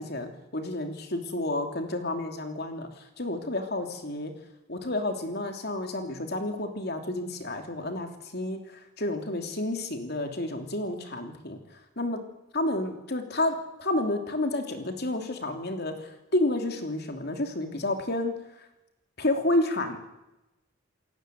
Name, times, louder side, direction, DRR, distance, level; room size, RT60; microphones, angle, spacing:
voice 1, 0.0-4.3 4.7-11.6 12.0-12.2 12.5-18.4 19.2-20.0, left 1 dB, 50° left, 5 dB, 3.2 m, -30 dB
28.5 x 16.5 x 9.4 m, 0.97 s
head